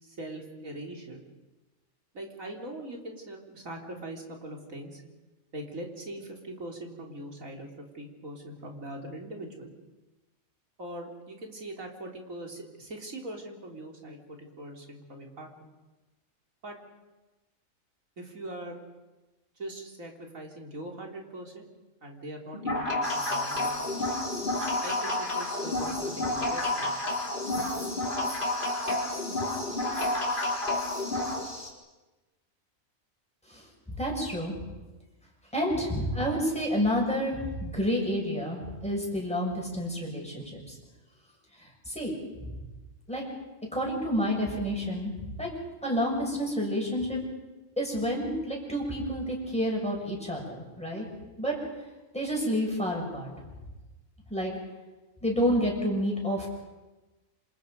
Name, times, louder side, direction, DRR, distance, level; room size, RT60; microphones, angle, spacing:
voice 1, 0.0-1.2 2.1-5.0 5.5-9.7 10.8-15.5 16.6-16.8 18.2-18.8 19.6-21.7 22.0-24.1 24.8-27.0 27.6-27.7, right 1 dB, 70° right, 1 dB, 3.8 m, -41 dB
sound 1, 22.5-31.4, left 2 dB, 35° left, 4.2 m, -30 dB
sound 2, 23.0-31.7, left 2 dB, 65° left, 5.1 m, -41 dB
voice 2, 33.9-34.6 35.5-40.8 41.6-42.1 42.4-42.5 43.1-43.2 43.7-45.5 45.8-47.2 47.8-51.1 51.4-51.5 52.1-53.3 54.3-54.5 55.2-56.5, equal, 5° left, -2 dB, 6.7 m, -29 dB
27.0 x 27.0 x 5.3 m, 1.1 s
omnidirectional pair, 1.4 m